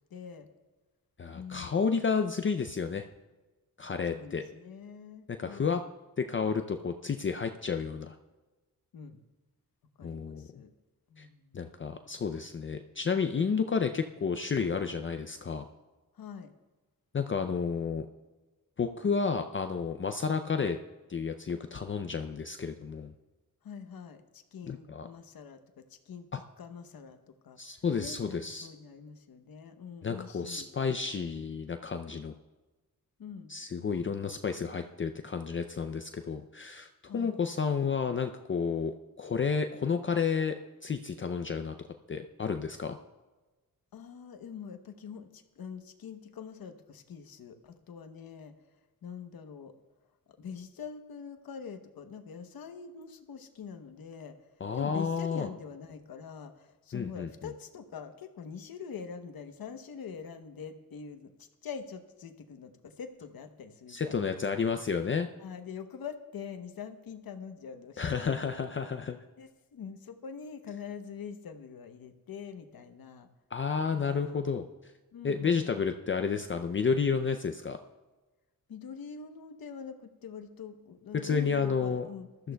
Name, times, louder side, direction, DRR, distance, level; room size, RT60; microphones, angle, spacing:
voice 1, 0.1-0.5 1.3-1.9 4.1-5.8 8.9-9.2 10.0-10.7 11.1-11.7 16.1-16.5 23.6-27.6 28.0-30.7 33.2-33.5 37.1-37.4 43.9-48.5 49.0-49.7 50.3-54.4 54.7-64.4 64.6-64.7 65.4-68.4 69.4-73.3 73.9-74.4 75.1-75.8 78.7-82.5, left 6 dB, 85° left, 7 dB, 1.0 m, -44 dB
voice 2, 1.2-3.0 3.8-4.4 5.3-5.8 6.2-8.2 10.0-10.5 11.2-11.3 11.5-15.7 17.1-18.1 18.8-20.8 21.1-23.1 24.7-25.1 27.6-28.7 30.0-32.3 33.5-40.5 40.8-41.7 42.1-43.0 54.6-55.5 56.9-57.3 63.9-65.3 68.0-69.2 73.5-74.9 75.2-77.8 81.1-82.1 82.4-82.5, left 5 dB, 35° left, 7 dB, 0.5 m, -31 dB
20.5 x 13.5 x 2.3 m, 1.2 s
wide cardioid pair, 110°, 35 cm